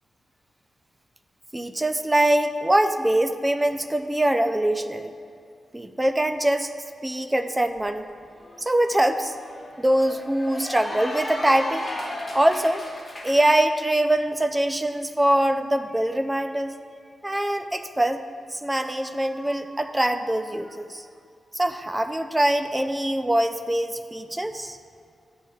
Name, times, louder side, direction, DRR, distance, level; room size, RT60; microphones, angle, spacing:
voice 1, 1.5-5.1 5.7-6.7 7.0-8.1 8.6-9.3 9.8-11.9 12.3-12.9 13.2-16.7 17.2-18.2 18.5-21.0 21.5-24.8, right 1 dB, 10° right, 8 dB, 0.4 m, -23 dB
Cheering / Applause, 7.8-7.9 8.2-13.6, left 1 dB, 20° left, 1.6 m, -36 dB
14.5 x 10.0 x 2.4 m, 2.4 s
wide cardioid pair, 165°, 0 cm